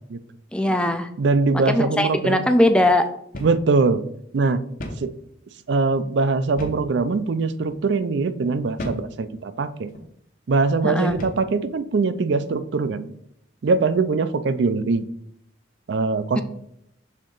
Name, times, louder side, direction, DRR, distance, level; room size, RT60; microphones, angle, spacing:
voice 1, 0.5-1.1 1.7-3.1 10.8-11.2 16.4-16.5, left 1 dB, 5° left, 7 dB, 0.4 m, -20 dB
voice 2, 1.2-2.4 3.4-4.0 4.3-4.6 5.0-5.1 5.7-9.9 10.5-13.0 13.6-15.0 15.9-16.4, right 4 dB, 70° right, 12 dB, 0.4 m, -22 dB
sound 1, 3.3-3.6 4.0-4.1 4.8-5.1 6.6-6.9 7.6-7.8 8.8-9.1 9.9-10.1 11.1-11.5, equal, 45° left, 0.9 m, -34 dB
6.4 x 3.8 x 3.8 m, 0.72 s
head